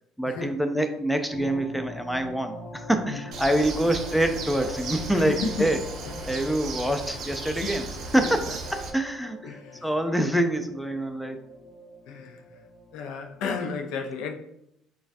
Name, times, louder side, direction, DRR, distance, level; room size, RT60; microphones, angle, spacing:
voice 1, 0.2-5.8 6.3-7.9 8.1-11.4, right 1 dB, ahead, 0.4 m, -26 dB
sound 1, 1.3-13.4, equal, 45° left, 1.1 m, -44 dB
Bird, 3.3-8.9, right 3 dB, 55° right, 0.7 m, -36 dB
voice 2, 5.1-5.7 6.1-6.9 7.6-7.8 8.2-8.3 9.4-9.9 12.1-12.6 12.9-14.3, left 5 dB, 75° left, 0.5 m, -33 dB
6.1 x 2.3 x 2.6 m
supercardioid pair, 100°, 0 cm